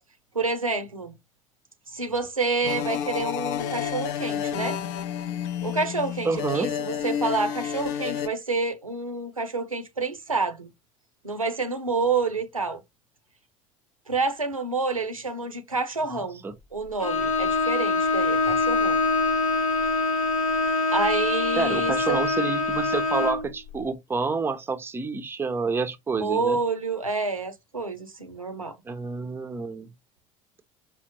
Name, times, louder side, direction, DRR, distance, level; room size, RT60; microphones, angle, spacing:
voice 1, 0.3-1.1 1.9-4.8 5.6-10.7 11.2-12.8 14.1-16.4 16.7-19.0 20.9-22.2 26.1-28.7, right 3 dB, 90° right, 0.6 m, -28 dB
sound 1, 2.6-8.3, left 9 dB, 55° left, 0.5 m, -30 dB
voice 2, 6.2-6.7 16.1-16.5 21.6-26.6 28.9-29.9, right 4 dB, 15° right, 0.5 m, -28 dB
Bowed string instrument, 17.0-23.5, left 3 dB, 80° left, 0.9 m, -24 dB
4.9 x 2.1 x 2.9 m
figure-of-eight pair, 65°, 17 cm